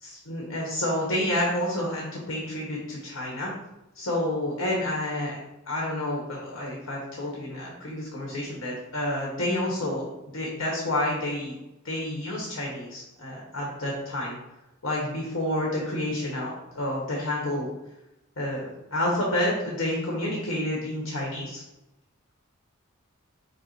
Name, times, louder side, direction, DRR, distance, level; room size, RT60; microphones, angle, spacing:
voice 1, 0.0-3.5 3.9-5.4 5.7-10.1 10.3-11.5 11.8-14.4 14.8-17.7 18.4-21.6, left 1 dB, 85° left, -3 dB, 1.1 m, -29 dB
5.3 x 2.0 x 4.3 m, 0.95 s
head